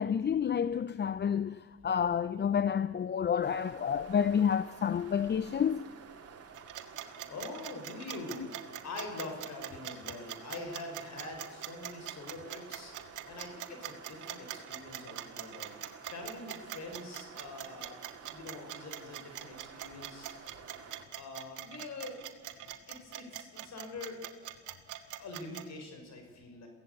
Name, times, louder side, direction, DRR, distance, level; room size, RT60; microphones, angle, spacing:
voice 1, 0.0-5.9, left 7 dB, 35° left, 0.6 m, -29 dB
sound 1, 3.4-21.1, right 6 dB, 50° right, 2.7 m, -51 dB
sound 2, 6.5-25.6, right 13 dB, 85° right, 1.7 m, -42 dB
voice 2, 7.2-8.5 8.8-12.9 13.3-15.7 16.1-18.0 18.3-20.4 21.1-24.2 25.2-26.7, left 2 dB, 60° left, 5.8 m, -44 dB
23.0 x 16.5 x 8.3 m
cardioid pair, 90°, 30 cm